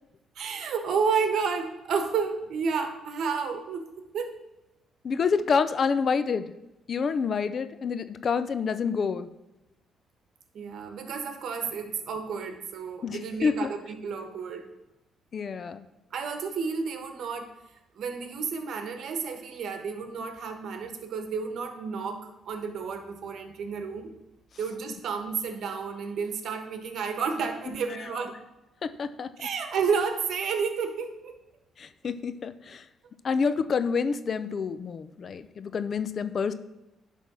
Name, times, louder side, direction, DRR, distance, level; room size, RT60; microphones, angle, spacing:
voice 1, 0.3-3.9 4.1-4.4 10.5-14.7 16.1-17.5 17.9-24.1 24.6-28.3 29.4-31.4, right 5 dB, 70° right, 6 dB, 1.2 m, -31 dB
voice 2, 5.0-6.5 6.9-9.3 13.0-13.7 15.3-15.8 28.8-29.5 31.8-32.8 33.2-36.5, left 5 dB, 50° left, 13 dB, 0.5 m, -28 dB
10.5 x 3.5 x 6.1 m, 0.97 s
cardioid pair, 90°, 0 cm